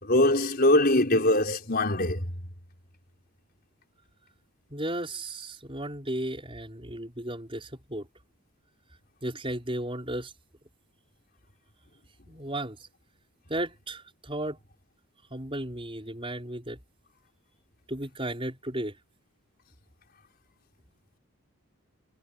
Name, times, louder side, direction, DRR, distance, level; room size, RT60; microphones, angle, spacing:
voice 1, 0.0-2.3, left 1 dB, 45° left, 5.2 m, -22 dB
voice 2, 4.7-8.1 9.2-10.3 12.3-12.9 13.5-14.6 15.3-16.8 17.9-18.9, right 1 dB, 25° right, 5.3 m, -34 dB
head